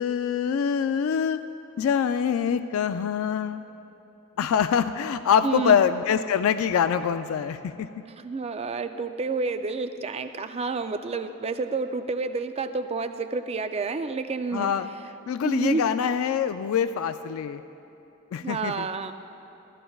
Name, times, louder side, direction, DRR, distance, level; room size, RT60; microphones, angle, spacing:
voice 1, 0.0-1.4 1.8-3.6 4.4-7.9 14.5-14.9 15.3-17.6 18.3-18.9, left 7 dB, 65° left, 11 dB, 0.3 m, -24 dB
voice 2, 5.4-5.8 8.1-14.7 15.4-15.9 18.4-19.1, right 4 dB, 25° right, 9 dB, 0.4 m, -29 dB
16.5 x 13.0 x 2.3 m, 3.0 s
head